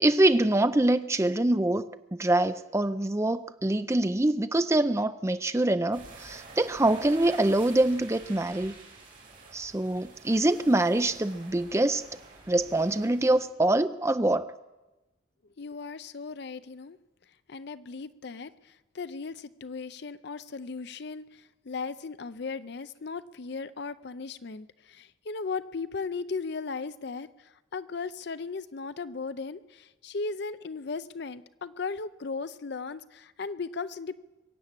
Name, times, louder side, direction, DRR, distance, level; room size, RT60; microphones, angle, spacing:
voice 1, 0.0-8.7 9.5-12.0 12.5-14.5, right 1 dB, 15° right, 0.5 m, -25 dB
sound 1, 5.9-13.4, right 3 dB, 45° right, 3.3 m, -48 dB
voice 2, 15.6-17.0 17.5-34.2, left 4 dB, 55° left, 0.5 m, -37 dB
23.0 x 8.3 x 7.5 m
head